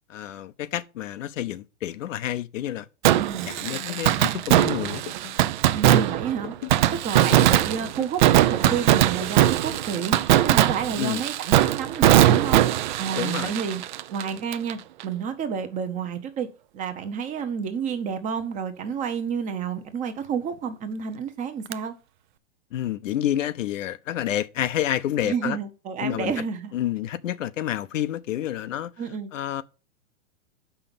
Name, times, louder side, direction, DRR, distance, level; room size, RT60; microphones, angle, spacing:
voice 1, 0.1-2.9 3.1-5.0 11.0-11.2 13.1-13.5 22.7-25.6 26.0-26.3 26.7-28.9 29.3-29.6, left 12 dB, 75° left, 0.8 m, -29 dB
voice 2, 3.0-3.5 5.7-6.5 6.9-10.2 10.4-12.6 13.0-13.8 14.1-16.5 16.7-21.9 25.2-26.7 29.0-29.3, right 7 dB, 20° right, 0.8 m, -30 dB
Fireworks, 3.0-14.7 15.0-15.1 21.7-21.8, right 13 dB, 40° right, 0.4 m, -21 dB
sound 1, 3.6-4.1 4.4-5.5 5.8-6.9 7.1-8.2 8.7-9.7 9.9-11.1, left 15 dB, 40° left, 0.5 m, -40 dB
6.9 x 5.7 x 6.9 m
hypercardioid pair, 150°, 38 cm